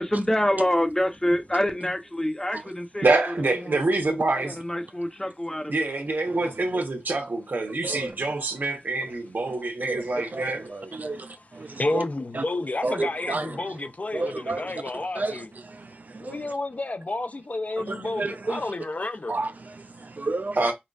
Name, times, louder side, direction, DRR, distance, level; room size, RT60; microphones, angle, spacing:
voice 1, 0.0-3.1 3.6-3.8 4.3-5.9, left 1 dB, 15° left, 0.9 m, -26 dB
voice 2, 3.0-4.6 5.7-10.9 20.6-20.7, right 2 dB, 80° right, 1.2 m, -26 dB
voice 3, 6.3-6.8 7.8-8.2 9.5-9.6 9.8-12.0 12.3-12.4 12.8-13.8 14.1-16.5 17.8-18.7 19.3-20.7, right 3 dB, 60° right, 0.4 m, -33 dB
voice 4, 11.6-15.5 16.2-19.3, left 2 dB, 50° left, 0.7 m, -31 dB
5.3 x 2.5 x 2.5 m
wide cardioid pair, 70°, 3 cm